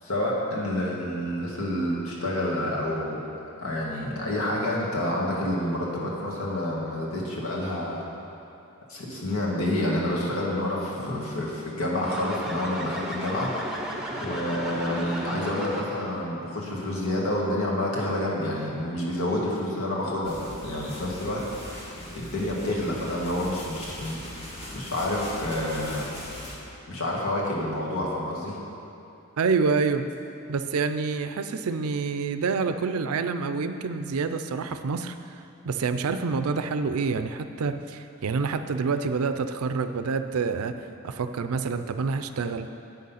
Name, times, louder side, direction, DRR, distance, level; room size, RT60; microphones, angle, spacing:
voice 1, 0.0-3.2 3.6-8.0 8.9-13.8 14.2-21.4 22.1-24.2 24.7-26.1 26.9-28.6, left 1 dB, 75° left, -4 dB, 1.9 m, -28 dB
sound 1, 12.0-16.2, right 1 dB, 5° right, 0.7 m, -34 dB
sound 2, 20.2-26.6, equal, 30° left, 1.7 m, -40 dB
voice 2, 29.4-30.1 30.5-35.4 35.6-40.8 41.0-42.7, right 4 dB, 90° right, 10 dB, 0.5 m, -27 dB
9.0 x 6.5 x 5.6 m, 2.9 s
head